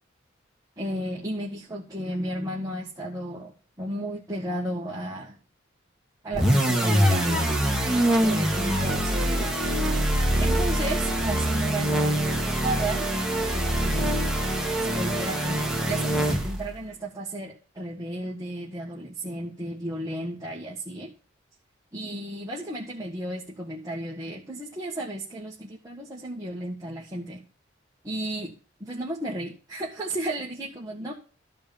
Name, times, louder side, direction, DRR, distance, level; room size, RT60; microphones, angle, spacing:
voice 1, 0.8-5.4 6.2-7.6 7.8-9.6 10.4-13.1 13.5-14.3 14.8-21.1 21.9-27.4 28.0-28.5 28.8-31.1, right 1 dB, 20° right, -3 dB, 1.6 m, -34 dB
sound 1, 6.3-16.7, right 1 dB, 5° right, 1.9 m, -24 dB
13.5 x 5.1 x 7.1 m, 0.38 s
head